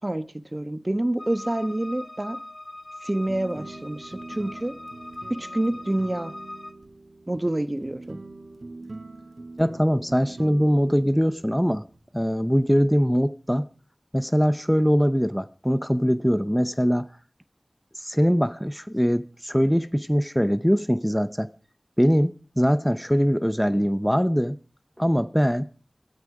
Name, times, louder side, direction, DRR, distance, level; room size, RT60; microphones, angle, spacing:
voice 1, 0.0-2.4 3.0-4.7 5.4-6.3 7.3-8.2, right 1 dB, 35° right, 1.1 m, -27 dB
sound 1, 1.2-6.7, left 1 dB, 55° left, 1.6 m, -41 dB
sound 2, 3.2-12.5, right 2 dB, 75° right, 2.5 m, -43 dB
voice 2, 9.6-11.8 12.1-13.7 14.1-17.1 17.9-21.5 22.0-24.6 25.0-25.6, equal, 5° left, 0.8 m, -22 dB
18.0 x 13.5 x 5.0 m
wide cardioid pair, 40°, 0 cm